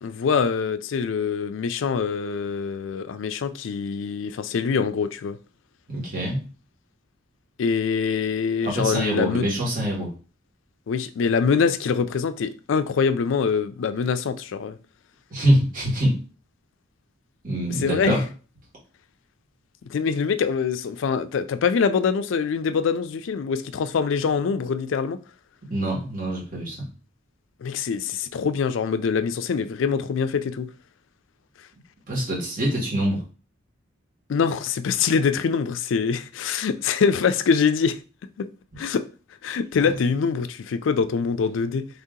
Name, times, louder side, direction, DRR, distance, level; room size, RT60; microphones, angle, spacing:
voice 1, 0.0-5.4 7.6-9.5 10.9-14.8 17.7-18.2 19.8-25.2 27.6-30.7 34.3-38.0 38.4-38.5 38.8-39.1 39.4-41.9, left 6 dB, 70° left, 0.4 m, -24 dB
voice 2, 5.9-6.4 8.6-10.1 15.3-16.2 17.4-18.2 25.7-26.8 32.1-33.2, right 1 dB, 40° right, 1.6 m, -24 dB
3.4 x 2.8 x 3.7 m
head